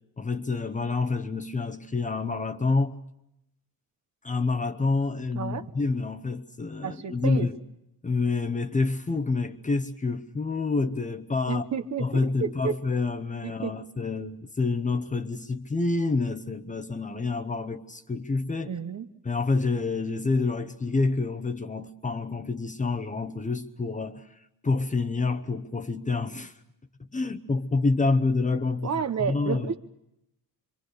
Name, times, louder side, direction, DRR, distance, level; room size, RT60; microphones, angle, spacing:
voice 1, 0.2-3.0 4.2-7.6 8.0-11.6 12.0-18.7 19.2-24.2 24.6-26.5 27.1-29.8, left 3 dB, 20° left, 0.9 m, -28 dB
voice 2, 6.8-7.5 11.5-12.8 13.4-13.8 18.6-19.1 28.8-29.8, right 7 dB, 50° right, 1.0 m, -31 dB
26.5 x 24.5 x 6.5 m
wide cardioid pair, 155°, 36 cm